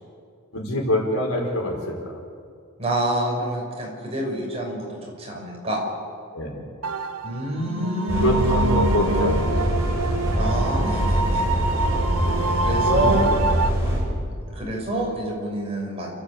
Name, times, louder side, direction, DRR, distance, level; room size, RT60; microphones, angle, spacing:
voice 1, 0.5-2.2 6.3-6.6 8.2-9.7 12.2-12.4 12.9-13.5, left 1 dB, 80° left, 1 dB, 4.7 m, -25 dB
voice 2, 2.8-5.8 7.2-8.3 10.3-11.6 12.5-13.2 14.3-16.1, right 1 dB, 30° right, -2 dB, 6.0 m, -27 dB
sound 1, 6.8-13.7, right 3 dB, 85° right, 1.2 m, -26 dB
sound 2, 8.1-14.0, equal, 15° right, 6.4 m, -24 dB
29.0 x 13.5 x 8.5 m, 2.2 s
head